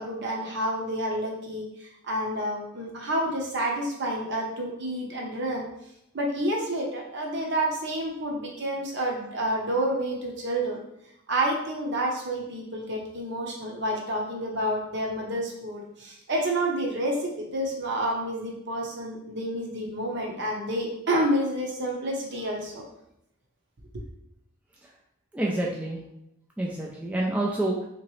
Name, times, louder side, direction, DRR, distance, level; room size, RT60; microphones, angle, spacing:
voice 1, 0.0-5.6 6.1-10.8 11.3-22.8 23.9-24.0, right 1 dB, 55° right, -1 dB, 0.8 m, -29 dB
voice 2, 25.3-26.0 26.6-27.9, right 1 dB, 5° right, -3 dB, 0.3 m, -28 dB
3.7 x 2.9 x 3.1 m, 0.80 s
head